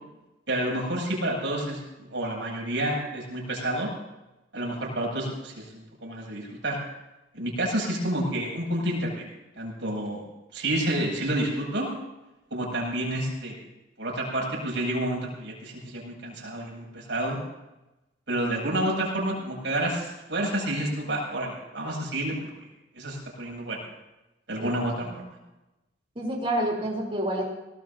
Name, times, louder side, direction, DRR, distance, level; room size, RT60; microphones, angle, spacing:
voice 1, 0.5-3.9 4.5-6.8 7.3-9.3 9.6-10.2 10.5-11.9 12.5-13.6 14.0-17.4 18.3-22.3 22.9-23.8 24.5-25.2, right 1 dB, 70° right, -3 dB, 7.3 m, -29 dB
voice 2, 26.2-27.4, right 1 dB, 30° right, -2 dB, 3.6 m, -28 dB
24.0 x 18.5 x 2.8 m, 0.99 s
head